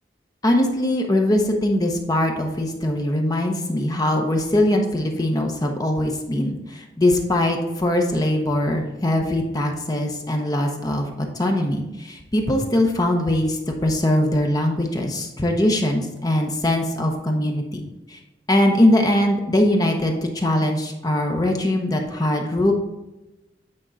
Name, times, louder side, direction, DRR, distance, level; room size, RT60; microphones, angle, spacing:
voice 1, 0.4-17.8 18.1-18.2 18.5-22.7, left 1 dB, 20° left, 2 dB, 0.8 m, -21 dB
8.8 x 4.4 x 3.9 m, 1.0 s
head